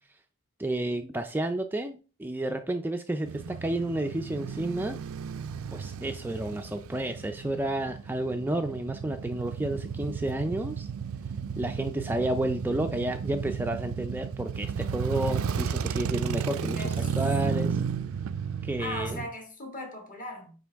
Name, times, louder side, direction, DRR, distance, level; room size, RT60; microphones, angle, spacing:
voice 1, 0.6-5.0 5.7-10.9 11.6-17.8 18.6-19.2, right 1 dB, 10° right, 0.4 m, -31 dB
Male speech man speaking / Motorcycle / Idling, 3.3-19.3, right 6 dB, 70° right, 0.4 m, -33 dB
voice 2, 16.7-17.2 18.8-20.5, left 2 dB, 40° left, 2.1 m, -39 dB
9.4 x 4.0 x 3.5 m
head